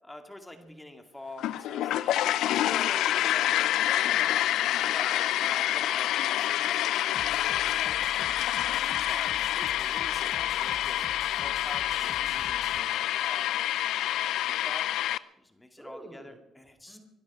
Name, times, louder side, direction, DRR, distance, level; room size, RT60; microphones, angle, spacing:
voice 1, 0.0-2.2 2.5-3.7 4.9-8.1 9.0-11.1 11.4-13.6 14.2-14.8 15.4-17.0, left 1 dB, 10° left, 5 dB, 2.2 m, -46 dB
voice 2, 0.5-0.9 3.8-5.1 5.5-5.8 15.8-16.4 16.9-17.0, right 1 dB, 10° right, 2 dB, 4.3 m, -48 dB
sound 1, 1.4-15.2, left 13 dB, 80° left, 0.5 m, -27 dB
sound 2, 7.1-12.8, left 3 dB, 30° left, 1.7 m, -47 dB
23.0 x 12.0 x 4.8 m, 0.96 s
cardioid pair, 80°, 0 cm